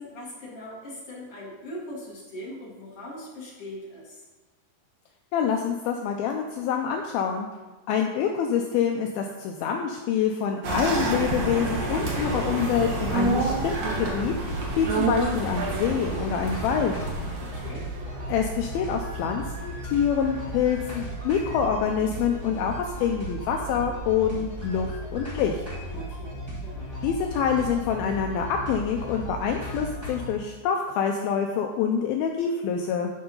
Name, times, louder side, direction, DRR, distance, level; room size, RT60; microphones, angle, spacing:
voice 1, 0.0-4.2 17.4-17.8 25.9-26.8, left 1 dB, 55° left, -4 dB, 1.8 m, -40 dB
voice 2, 5.3-7.5 7.9-14.3 14.8-16.9 18.3-25.6 27.0-33.1, left 7 dB, 80° left, 3 dB, 2.2 m, -26 dB
sound 1, 10.6-17.7, right 2 dB, 60° right, 1.9 m, -31 dB
sound 2, 10.7-30.3, right 1 dB, 15° right, 1.0 m, -36 dB
sound 3, 13.1-21.4 21.7-21.8, right 3 dB, 75° right, 3.0 m, -32 dB
10.5 x 4.8 x 5.4 m, 1.2 s
omnidirectional pair, 4.8 m